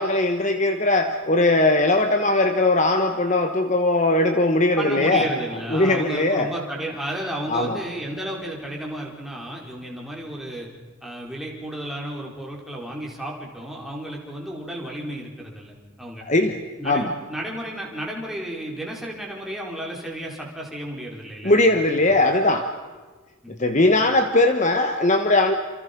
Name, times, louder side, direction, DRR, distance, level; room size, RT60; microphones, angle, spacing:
voice 1, 0.0-5.3 5.7-6.5 7.5-7.8 16.2-17.1 21.4-22.7 23.5-25.5, left 2 dB, 35° left, 6 dB, 1.4 m, -20 dB
voice 2, 4.7-10.7 11.0-16.3 16.8-21.9 23.4-23.6, right 1 dB, ahead, -2 dB, 4.8 m, -33 dB
29.5 x 27.5 x 5.4 m, 1.4 s
head